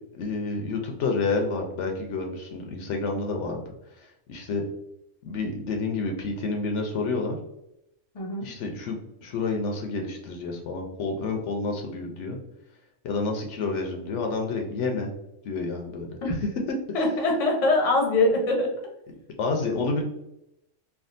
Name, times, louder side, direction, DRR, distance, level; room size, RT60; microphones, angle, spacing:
voice 1, 0.1-3.6 4.0-4.6 5.2-7.4 8.4-9.0 9.2-12.4 13.0-15.1 15.4-16.2 16.7-16.8 19.4-20.0, left 3 dB, 75° left, 3 dB, 0.9 m, -29 dB
voice 2, 8.1-8.5 16.2-16.3 16.9-18.7, left 2 dB, 35° left, 0 dB, 0.7 m, -23 dB
3.4 x 2.3 x 2.5 m, 0.83 s
omnidirectional pair, 1.3 m